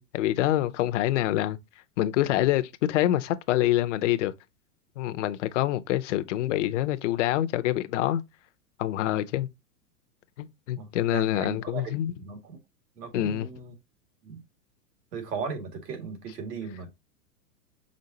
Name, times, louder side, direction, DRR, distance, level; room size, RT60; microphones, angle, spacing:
voice 1, 0.0-1.6 2.0-4.3 5.0-8.2 8.8-9.5 10.4-12.1 13.1-13.5, left 13 dB, 50° left, 0.6 m, -26 dB
voice 2, 10.8-11.9 12.2-12.6 13.0-13.7 14.2-14.4 15.1-16.9, right 5 dB, 85° right, 2.1 m, -37 dB
5.2 x 3.7 x 2.7 m
supercardioid pair, 155°, 47 cm